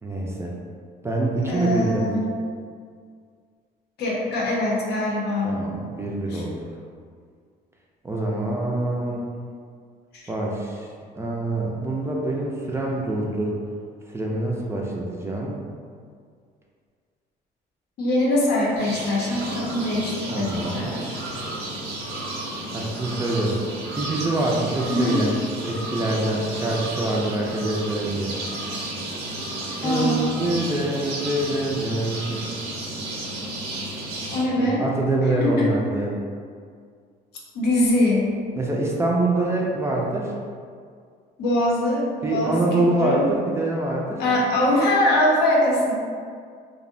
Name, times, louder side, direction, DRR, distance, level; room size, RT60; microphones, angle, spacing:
voice 1, 0.0-0.5 1.0-2.1 5.4-6.6 8.0-9.2 10.3-10.9 11.2-13.6 14.1-15.6 20.3-20.9 22.7-23.6 24.0-25.4 25.6-28.4 29.8-32.4 34.5-36.2 38.6-40.3 42.2-44.3, right 2 dB, 15° right, -3 dB, 0.3 m, -25 dB
voice 2, 1.5-2.3 4.0-5.6 6.3-6.4 10.1-10.2 18.0-21.2 24.9-25.2 29.8-30.3 34.3-34.8 35.2-35.9 37.5-38.3 41.4-43.3 44.2-45.9, left 1 dB, 75° left, -3 dB, 0.6 m, -23 dB
sound 1, 18.8-34.4, right 1 dB, 80° right, 0.6 m, -32 dB
2.6 x 2.0 x 2.5 m, 2.1 s
cardioid pair, 110°, 17 cm